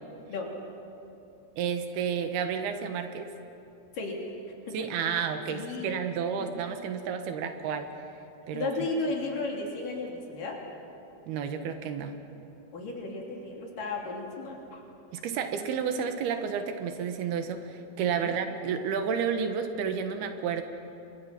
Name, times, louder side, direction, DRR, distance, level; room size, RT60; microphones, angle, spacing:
voice 1, 1.6-3.3 4.7-7.9 8.5-8.7 11.3-12.1 15.1-20.6, right 7 dB, 80° right, 7 dB, 3.3 m, -31 dB
voice 2, 5.5-5.9 6.4-6.5 8.5-10.6 12.7-14.8 18.1-18.3, left 3 dB, 60° left, -1 dB, 4.5 m, -34 dB
30.0 x 24.0 x 5.9 m, 2.8 s
omnidirectional pair, 4.5 m